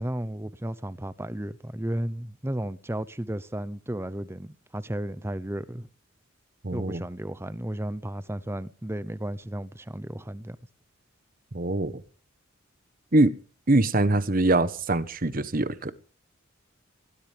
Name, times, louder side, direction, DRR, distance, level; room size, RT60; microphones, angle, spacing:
voice 1, 0.0-5.9 6.7-10.6, right 1 dB, 10° right, 0.7 m, -33 dB
voice 2, 6.6-7.0 11.5-12.0 13.1-13.3 13.7-15.9, right 2 dB, 40° right, 1.1 m, -23 dB
20.5 x 18.5 x 3.5 m
head